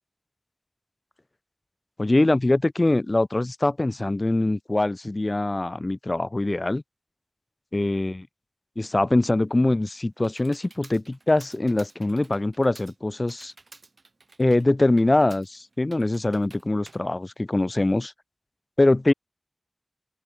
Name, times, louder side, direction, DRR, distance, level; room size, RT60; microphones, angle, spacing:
voice 1, 2.0-6.8 7.7-8.2 8.8-13.5 14.4-18.1 18.8-19.1, left 2 dB, 45° left, 1.3 m, -23 dB
Computer keyboard, 9.4-18.0, right 3 dB, 80° right, 3.9 m, -53 dB
open air
wide cardioid pair, 45°, 0 cm